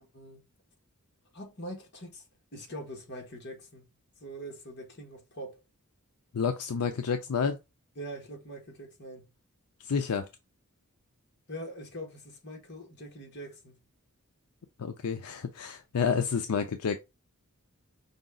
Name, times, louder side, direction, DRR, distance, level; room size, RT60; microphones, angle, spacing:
voice 1, 1.3-2.2 2.5-3.9 4.2-5.6 7.9-9.3 11.5-13.8, equal, 50° left, 1.5 m, -43 dB
voice 2, 6.3-7.6 9.8-10.3 14.8-17.0, left 6 dB, 85° left, 0.5 m, -29 dB
5.1 x 2.3 x 3.7 m
head